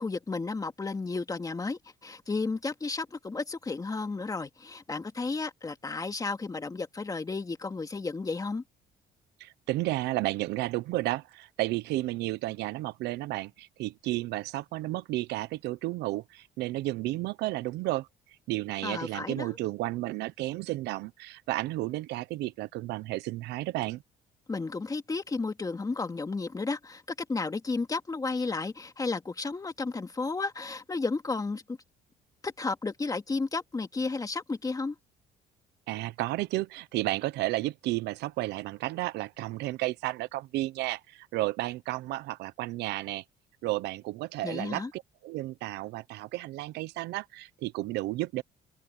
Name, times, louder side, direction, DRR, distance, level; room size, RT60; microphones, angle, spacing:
voice 1, 0.0-8.6 18.8-19.6 24.5-27.0 27.3-31.8 32.4-34.9 44.4-44.9, left 3 dB, 20° left, 2.6 m, -33 dB
voice 2, 9.4-18.1 18.5-24.0 35.9-43.2 43.6-48.4, right 18 dB, 85° right, 0.8 m, -32 dB
cardioid pair, 110°, 17 cm